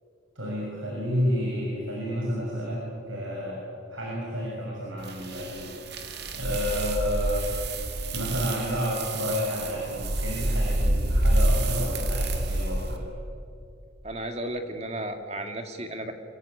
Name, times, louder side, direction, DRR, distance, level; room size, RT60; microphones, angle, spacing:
voice 1, 0.3-3.6 3.9-5.7 6.3-7.5 8.1-13.1, equal, 70° right, -3 dB, 6.9 m, -30 dB
sound 1, 5.1-13.0, right 1 dB, 55° right, 2.4 m, -28 dB
voice 2, 14.0-16.1, right 1 dB, 30° right, 6 dB, 2.2 m, -34 dB
26.0 x 21.5 x 9.7 m, 2.5 s
head